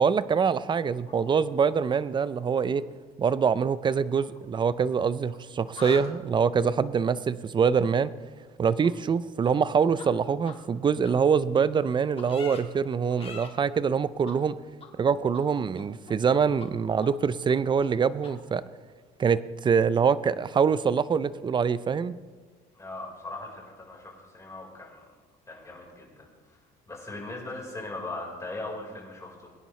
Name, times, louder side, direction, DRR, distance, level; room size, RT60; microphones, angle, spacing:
voice 1, 0.0-2.8 3.2-8.1 8.6-14.6 15.0-18.6 19.2-22.2, right 6 dB, 30° right, 16 dB, 0.5 m, -24 dB
sound 1, 0.7-2.3 2.5-2.8 3.8-5.4 5.6-6.1 8.8-8.9 9.4-9.5 10.0-10.1 10.4-10.5 11.0-11.1 11.5-11.6 12.2-12.6 13.1-13.5 14.3-14.4 14.8-14.9 15.3-15.4 15.8-16.3 16.6-16.7 17.0-17.1 17.5-17.6 17.8-17.9 18.2-18.3, left 5 dB, 35° left, 1.9 m, -43 dB
voice 2, 22.7-25.0 25.5-26.2 26.9-29.5, left 2 dB, 20° left, -2 dB, 4.4 m, -39 dB
22.5 x 10.0 x 3.2 m, 1.4 s
cardioid pair, 110°, 17 cm